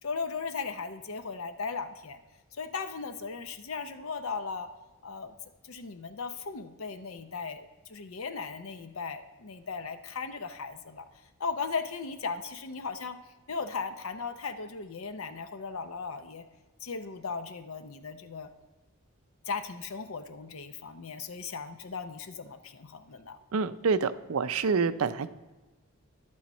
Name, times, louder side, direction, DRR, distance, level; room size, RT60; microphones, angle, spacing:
voice 1, 0.0-2.2 2.6-4.7 5.0-5.3 5.6-11.0 11.4-13.2 13.5-16.4 16.8-18.5 19.5-23.4, left 5 dB, 70° left, 8 dB, 0.7 m, -37 dB
voice 2, 23.5-25.3, right 5 dB, 75° right, 13 dB, 0.5 m, -27 dB
11.0 x 8.6 x 4.2 m, 1.2 s
head